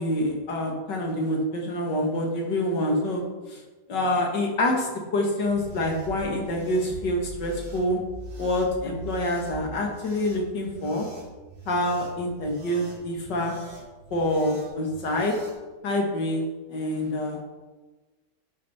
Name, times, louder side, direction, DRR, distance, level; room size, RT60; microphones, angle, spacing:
voice 1, 0.0-3.2 3.5-3.6 3.9-8.0 8.4-11.1 11.7-13.5 14.1-15.3 15.8-16.4 16.7-17.4, left 1 dB, 90° left, 1 dB, 2.4 m, -26 dB
sound 1, 5.4-15.6, right 2 dB, 50° right, 2.1 m, -42 dB
10.5 x 6.7 x 4.2 m, 1.2 s
omnidirectional pair, 1.8 m